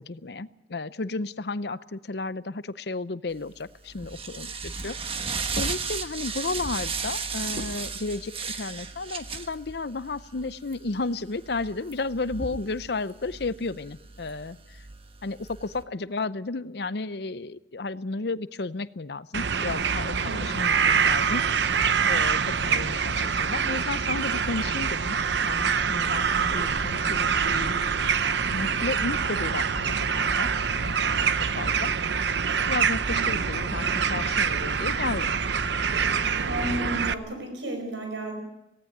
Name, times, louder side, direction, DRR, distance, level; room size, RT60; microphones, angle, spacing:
voice 1, 0.0-4.5 4.8-4.9 5.5-14.6 15.2-21.8 22.1-25.2 25.4-28.1 28.5-31.3 31.6-31.9 32.7-35.3, left 3 dB, 60° left, 15 dB, 0.7 m, -33 dB
sound 1, 3.4-15.8, right 5 dB, 30° right, 1.2 m, -35 dB
sound 2, 19.3-37.1, right 6 dB, 70° right, 0.8 m, -25 dB
voice 2, 33.1-33.4 36.5-38.4, right 1 dB, 85° right, 4 dB, 5.0 m, -33 dB
18.0 x 17.5 x 9.2 m, 0.93 s
head